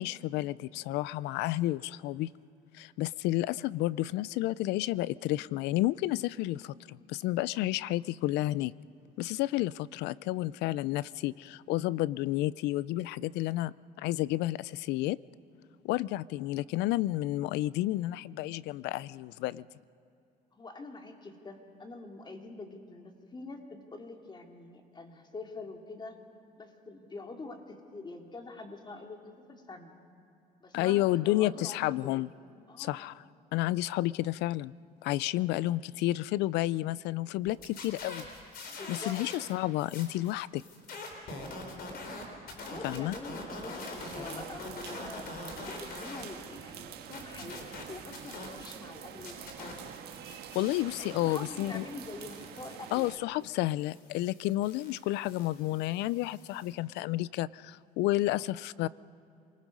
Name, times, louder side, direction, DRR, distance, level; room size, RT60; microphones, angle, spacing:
voice 1, 0.0-2.3 2.7-8.7 9.2-15.2 15.8-19.6 30.7-32.3 32.8-33.2 33.5-34.7 35.0-38.3 38.6-40.6 42.8-43.1 50.5-51.8 52.9-58.9, left 16 dB, 85° left, 21 dB, 0.4 m, -31 dB
voice 2, 20.5-26.2 26.6-29.9 30.6-32.3 32.7-33.1 35.4-35.8 38.7-39.2 41.8-42.2 42.6-45.3 45.6-49.8 51.0-53.1 58.3-58.6, left 3 dB, 25° left, 3 dB, 2.5 m, -45 dB
sound 1, 37.5-39.5 39.8-46.2 46.6-48.9 49.2-56.7, left 2 dB, 65° left, 4.3 m, -44 dB
sound 2, 44.0-53.1, right 9 dB, 75° right, 1.5 m, -46 dB
27.5 x 20.0 x 5.3 m, 2.7 s
cardioid pair, 110°, 17 cm